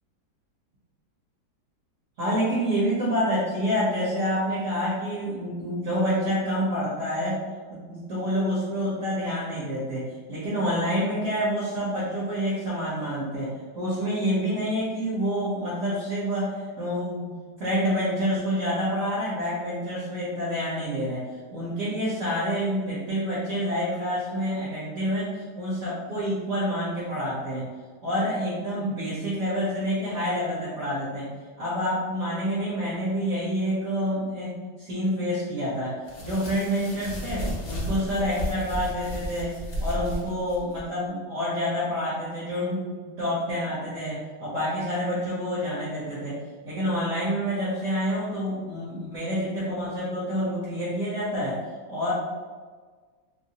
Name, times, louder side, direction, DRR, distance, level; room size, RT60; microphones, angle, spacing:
voice 1, 2.2-7.4 7.7-21.2 21.5-27.7 28.0-31.3 31.6-34.5 34.8-36.0 36.2-39.5 39.8-46.4 46.6-51.6 51.9-52.1, equal, 55° right, -9 dB, 1.1 m, -28 dB
sound 1, 36.1-40.8, left 1 dB, 75° left, 0.5 m, -33 dB
3.0 x 2.6 x 2.8 m, 1.5 s
omnidirectional pair, 1.9 m